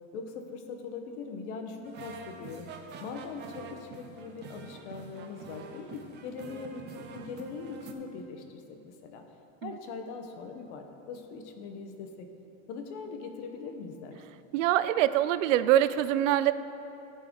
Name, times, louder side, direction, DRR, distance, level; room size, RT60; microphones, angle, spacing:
voice 1, 0.1-2.7 3.0-9.2 9.6-12.3 12.7-14.2, left 5 dB, 65° left, 5 dB, 1.1 m, -41 dB
sound 1, 1.8-7.9, right 5 dB, 30° right, 0.7 m, -46 dB
voice 2, 14.5-16.5, right 12 dB, 85° right, 14 dB, 0.5 m, -24 dB
14.0 x 4.8 x 4.6 m, 2.9 s
supercardioid pair, 150°, 37 cm